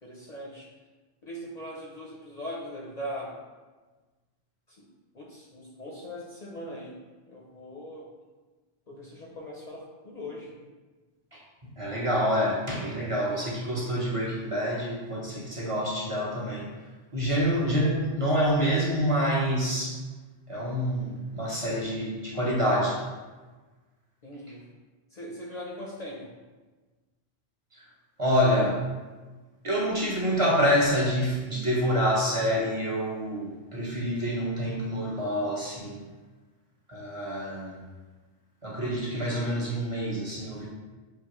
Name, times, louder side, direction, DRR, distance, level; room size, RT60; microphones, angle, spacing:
voice 1, 0.0-0.7 1.2-3.4 4.7-4.8 5.1-7.0 7.3-8.1 8.9-10.6 17.3-17.5 24.2-24.6 25.1-26.3, equal, 50° left, -3 dB, 0.6 m, -40 dB
voice 2, 11.8-16.6 17.1-19.9 20.5-23.0 28.2-28.8 29.6-36.0 36.9-37.8 38.6-40.7, equal, 35° right, -5 dB, 0.8 m, -27 dB
5.6 x 2.8 x 2.9 m, 1.3 s
omnidirectional pair, 1.1 m